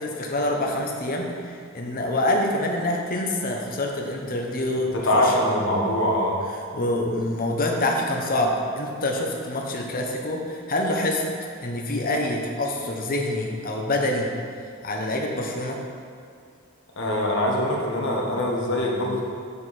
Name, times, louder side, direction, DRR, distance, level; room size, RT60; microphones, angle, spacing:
voice 1, 0.0-5.3 6.7-11.3 11.6-14.3 14.8-15.8, left 1 dB, 45° left, 1 dB, 1.0 m, -26 dB
voice 2, 4.7-6.4 17.0-19.2, left 1 dB, 65° left, -2 dB, 1.4 m, -23 dB
7.0 x 6.9 x 4.3 m, 2.3 s
head